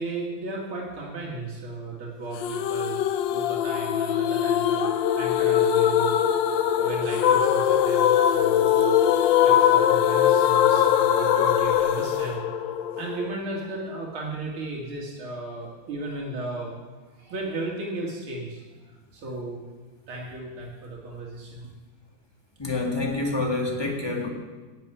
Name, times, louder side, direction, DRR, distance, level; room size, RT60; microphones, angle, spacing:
voice 1, 0.0-3.0 3.3-6.2 6.5-9.0 9.4-12.7 12.9-16.9 17.2-18.6 19.1-19.6 20.1-21.7, right 2 dB, 90° right, -3 dB, 2.9 m, -35 dB
sound 1, 2.4-13.4, left 10 dB, 70° left, 1.3 m, -21 dB
voice 2, 22.6-24.3, left 2 dB, 10° left, 0 dB, 2.0 m, -27 dB
10.0 x 7.6 x 9.0 m, 1.3 s
omnidirectional pair, 2.2 m